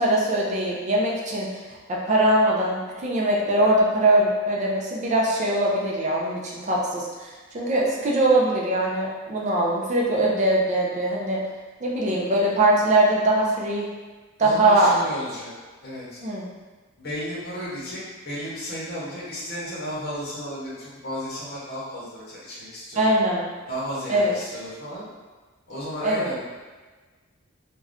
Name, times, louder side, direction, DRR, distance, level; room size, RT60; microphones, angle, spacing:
voice 1, 0.0-11.4 11.8-13.9 14.4-15.0 16.2-16.5 23.0-23.5 24.1-24.3 26.0-26.3, right 1 dB, 35° right, -3 dB, 0.5 m, -22 dB
voice 2, 14.4-15.5 15.8-16.2 17.0-23.1 23.7-25.0 25.7-26.4, equal, 50° left, -8 dB, 0.8 m, -33 dB
2.5 x 2.2 x 3.4 m, 1.4 s
head